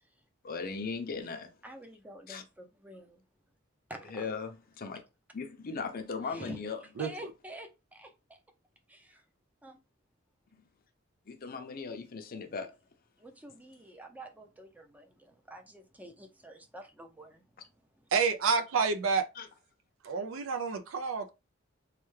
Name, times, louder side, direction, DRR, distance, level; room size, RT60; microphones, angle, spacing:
voice 1, 0.4-1.5 2.3-2.4 4.1-5.0 5.3-6.8 11.3-12.7 19.4-19.5, left 5 dB, 45° left, 0.6 m, -38 dB
voice 2, 1.6-3.2 3.9-4.3 6.2-6.6 7.0-8.4 8.9-9.2 9.6-9.8 13.2-17.6 18.0-18.1, right 1 dB, 10° right, 0.5 m, -48 dB
voice 3, 7.0-7.3 18.1-19.3 20.0-21.3, right 5 dB, 70° right, 0.4 m, -29 dB
3.3 x 2.2 x 3.2 m
head